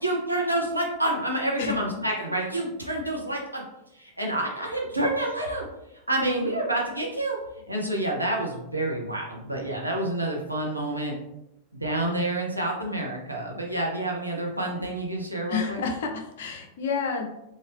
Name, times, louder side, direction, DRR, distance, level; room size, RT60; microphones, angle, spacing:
voice 1, 0.0-3.6 3.9-5.6 6.1-7.4 7.7-11.1 11.7-15.8, right 1 dB, 85° right, -1 dB, 0.8 m, -28 dB
voice 2, 15.5-17.3, left 5 dB, 55° left, 3 dB, 0.6 m, -29 dB
3.6 x 2.6 x 3.4 m, 0.86 s
figure-of-eight pair, 90°, 0 cm